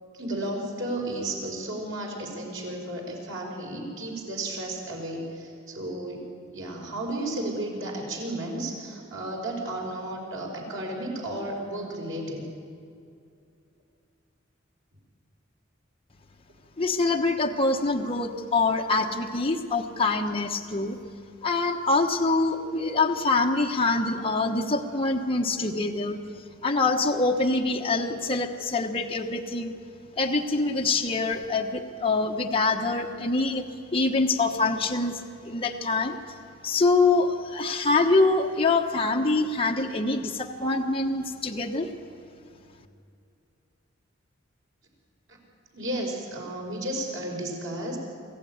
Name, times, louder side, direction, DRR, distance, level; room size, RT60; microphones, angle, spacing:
voice 1, 0.1-6.3 6.5-12.5 45.3-45.4 45.7-48.0, right 1 dB, 85° right, -1 dB, 5.3 m, -33 dB
voice 2, 16.8-21.0 21.4-26.2 26.6-29.8 30.2-33.6 33.9-36.2 36.6-41.9, left 3 dB, 30° left, 2 dB, 1.1 m, -25 dB
24.0 x 15.5 x 9.5 m, 2.4 s
head